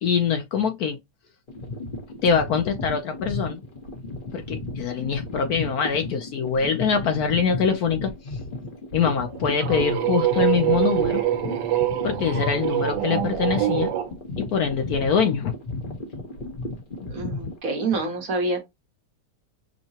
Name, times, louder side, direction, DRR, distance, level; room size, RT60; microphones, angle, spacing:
voice 1, 0.0-1.0 2.2-3.6 4.3-8.1 8.9-11.2 12.0-13.9 14.4-15.5, left 6 dB, 65° left, 1.0 m, -24 dB
sound 1, 1.5-17.6, left 2 dB, 35° left, 0.9 m, -34 dB
sound 2, 9.2-14.1, right 12 dB, 75° right, 1.4 m, -25 dB
voice 2, 17.0-18.6, right 3 dB, 55° right, 1.3 m, -27 dB
5.5 x 2.2 x 2.8 m
omnidirectional pair, 2.0 m